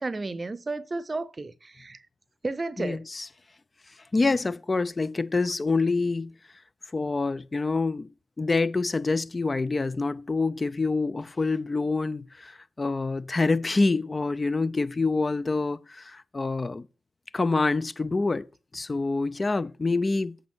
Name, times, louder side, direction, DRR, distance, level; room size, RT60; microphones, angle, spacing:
voice 1, 0.0-2.0 2.4-3.0, right 3 dB, 35° right, 0.8 m, -32 dB
voice 2, 2.8-3.3 4.1-6.3 6.9-8.1 8.4-16.9 17.3-18.5 18.7-20.3, left 3 dB, 35° left, 0.7 m, -26 dB
8.3 x 5.3 x 6.2 m
hypercardioid pair, 40°, 0 cm